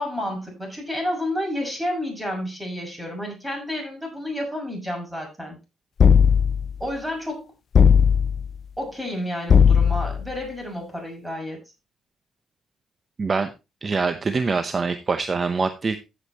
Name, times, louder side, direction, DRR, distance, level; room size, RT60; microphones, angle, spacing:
voice 1, 0.0-5.6 6.8-7.5 8.8-11.6, left 1 dB, 5° right, 2 dB, 6.4 m, -30 dB
sound 1, 6.0-6.8 7.7-8.5 9.5-10.3, left 7 dB, 50° left, 0.4 m, -16 dB
voice 2, 13.2-13.5 13.8-16.0, right 4 dB, 35° right, 9 dB, 0.8 m, -24 dB
15.0 x 7.3 x 2.9 m, 0.26 s
cardioid pair, 90°, 0 cm